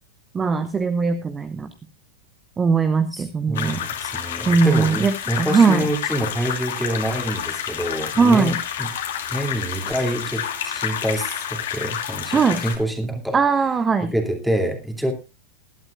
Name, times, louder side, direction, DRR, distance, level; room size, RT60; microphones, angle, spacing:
voice 1, 0.3-1.7 2.6-3.8 4.5-5.8 8.2-8.6 12.3-12.6 13.3-14.1, right 5 dB, 20° right, 10 dB, 0.9 m, -19 dB
voice 2, 3.1-8.9 9.3-13.4 14.0-15.1, right 1 dB, 5° right, 4 dB, 2.6 m, -26 dB
sound 1, 3.5-12.8, left 9 dB, 60° left, 2.3 m, -29 dB
19.5 x 12.0 x 2.4 m, 0.26 s
figure-of-eight pair, 90°, 0 cm